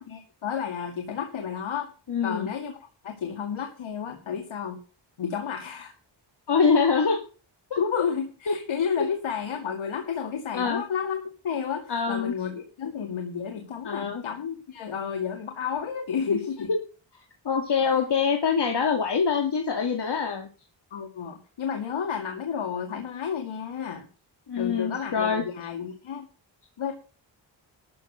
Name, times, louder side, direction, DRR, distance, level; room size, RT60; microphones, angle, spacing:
voice 1, 0.0-1.9 2.2-2.8 3.0-4.8 5.2-5.9 7.8-16.7 20.9-24.1 24.6-26.3 26.8-26.9, left 7 dB, 85° left, 3 dB, 2.2 m, -31 dB
voice 2, 2.1-2.5 6.5-7.2 8.5-8.6 10.5-10.8 11.9-12.3 13.8-14.2 16.3-16.4 16.7-16.8 17.4-20.5 24.5-25.4, left 5 dB, 60° left, 3 dB, 2.4 m, -24 dB
13.0 x 6.8 x 6.5 m, 0.35 s
cardioid pair, 80°, 47 cm